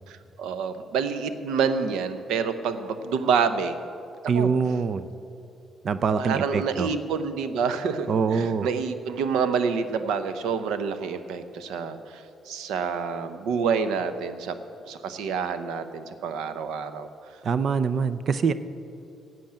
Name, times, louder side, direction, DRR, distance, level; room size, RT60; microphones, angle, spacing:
voice 1, 0.1-3.8 4.3-4.5 6.2-14.6 14.9-17.1, right 6 dB, 90° right, 11 dB, 0.8 m, -28 dB
voice 2, 4.3-5.1 5.8-6.9 8.1-8.7 17.4-18.5, right 5 dB, 55° right, 14 dB, 0.5 m, -24 dB
11.5 x 7.8 x 8.8 m, 2.8 s
cardioid pair, 90°, 0 cm